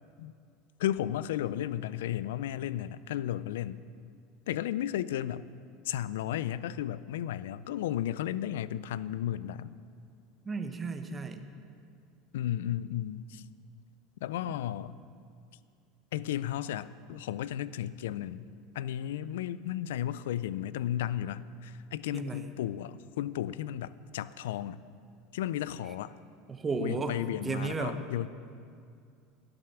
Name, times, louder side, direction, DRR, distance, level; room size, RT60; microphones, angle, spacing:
voice 1, 0.8-3.8 4.5-5.5 5.8-9.7 12.3-13.4 14.2-15.0 16.1-18.5 18.7-24.8 25.3-26.1 26.8-28.3, left 11 dB, 80° left, 17 dB, 0.3 m, -34 dB
voice 2, 10.5-11.4 14.4-14.5 22.1-22.5 26.5-27.2 27.4-28.0, right 4 dB, 25° right, 7 dB, 0.9 m, -34 dB
11.0 x 7.7 x 5.9 m, 2.3 s
hypercardioid pair, 100°, 0 cm